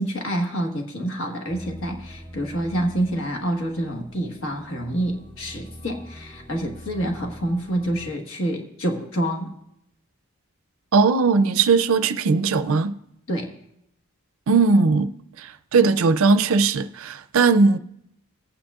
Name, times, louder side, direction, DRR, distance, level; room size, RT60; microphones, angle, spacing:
voice 1, 0.0-9.5 13.3-13.5, right 1 dB, 60° left, 1.4 m, -27 dB
sound 1, 1.5-8.1, equal, 10° left, 1.0 m, -43 dB
voice 2, 10.9-12.9 14.5-15.1 15.4-17.8, right 4 dB, 65° right, 0.4 m, -19 dB
19.0 x 8.8 x 2.4 m
head